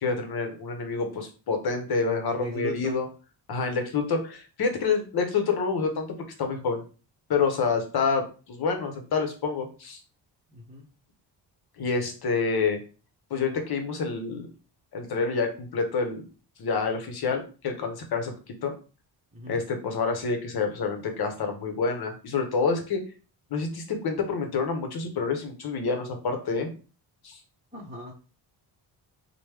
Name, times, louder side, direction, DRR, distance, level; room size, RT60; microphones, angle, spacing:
voice 1, 0.0-3.1 3.5-6.1 6.4-6.8 7.3-10.0 11.8-12.8 13.3-14.5 14.9-16.2 16.6-18.3 18.6-18.7 19.5-23.0 23.5-26.7 27.2-27.4, left 4 dB, 60° left, 5 dB, 0.9 m, -27 dB
voice 2, 2.3-2.9 10.5-10.8 19.3-19.6 27.7-28.1, equal, 15° right, -5 dB, 0.8 m, -38 dB
3.0 x 2.2 x 3.3 m, 0.35 s
cardioid pair, 95°, 43 cm